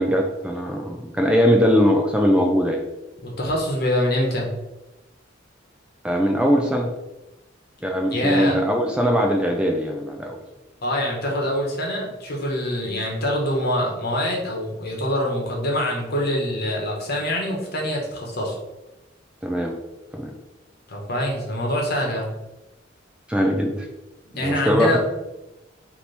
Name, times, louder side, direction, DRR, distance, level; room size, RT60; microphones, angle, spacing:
voice 1, 0.0-2.8 6.0-6.9 7.8-10.4 19.4-19.8 20.1-20.3 23.3-23.9 24.4-25.0, equal, 5° right, 1 dB, 0.3 m, -20 dB
voice 2, 3.2-4.5 8.1-8.6 10.8-18.6 20.9-22.3 24.3-25.0, left 1 dB, 55° left, -1 dB, 1.1 m, -25 dB
3.3 x 2.8 x 4.2 m, 0.99 s
head